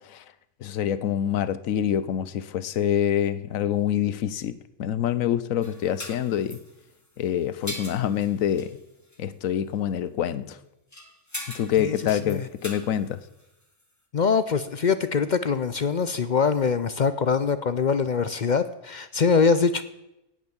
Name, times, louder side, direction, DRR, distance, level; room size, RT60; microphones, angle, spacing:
voice 1, 0.6-6.6 7.2-8.8 9.2-10.6 11.5-13.2, left 10 dB, 80° left, 1.1 m, -26 dB
sound 1, 5.6-7.2 7.4-8.8 9.1-9.2 10.9-13.8, left 1 dB, 15° left, 1.5 m, -41 dB
voice 2, 14.1-19.8, left 5 dB, 50° left, 0.5 m, -23 dB
17.0 x 6.3 x 7.2 m
omnidirectional pair, 1.4 m